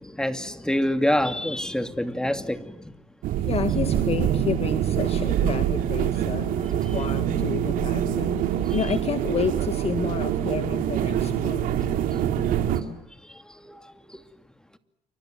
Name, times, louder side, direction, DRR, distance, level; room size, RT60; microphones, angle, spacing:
voice 1, 0.0-2.7 13.6-13.7, left 1 dB, 5° left, 2.6 m, -26 dB
sound 1, 3.2-12.8, right 10 dB, 75° right, 2.8 m, -25 dB
voice 2, 3.4-12.0, left 7 dB, 45° left, 1.8 m, -30 dB
29.0 x 25.0 x 7.8 m
cardioid pair, 85°, 14 cm